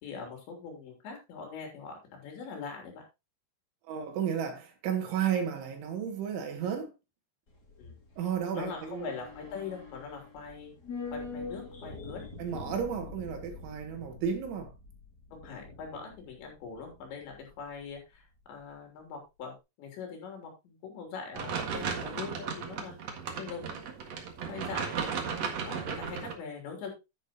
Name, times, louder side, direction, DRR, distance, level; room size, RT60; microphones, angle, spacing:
voice 1, 0.0-3.1 7.8-8.0 8.5-10.7 11.1-12.3 15.4-23.0 23.4-23.9 24.5-25.2 25.6-26.9, left 5 dB, 70° left, 5.2 m, -42 dB
voice 2, 3.9-6.9 8.2-9.1 12.4-14.7, right 8 dB, 80° right, 4.4 m, -33 dB
sound 1, 7.5-17.9 18.2-18.3, left 3 dB, 30° left, 1.9 m, -45 dB
sound 2, 21.3-26.3, right 6 dB, 55° right, 1.9 m, -35 dB
11.0 x 9.9 x 2.9 m
omnidirectional pair, 5.4 m